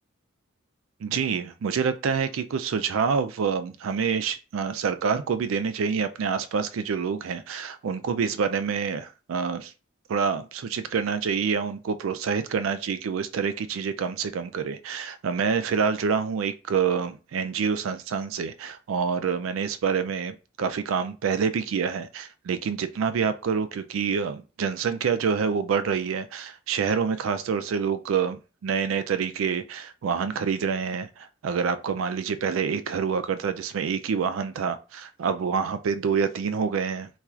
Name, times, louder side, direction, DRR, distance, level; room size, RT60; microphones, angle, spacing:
voice 1, 1.0-9.7 10.1-37.1, right 6 dB, 80° right, 0.4 m, -27 dB
4.3 x 2.3 x 2.4 m
head